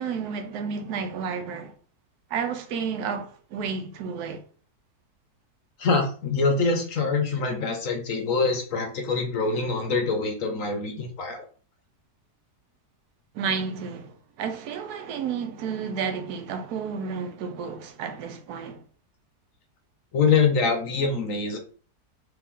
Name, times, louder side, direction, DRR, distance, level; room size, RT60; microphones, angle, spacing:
voice 1, 0.0-1.8 2.3-4.4 13.3-18.8, right 6 dB, 75° right, 1.1 m, -31 dB
voice 2, 5.8-11.4 20.1-21.6, left 4 dB, 65° left, 0.9 m, -24 dB
3.3 x 2.9 x 3.6 m
omnidirectional pair, 1.7 m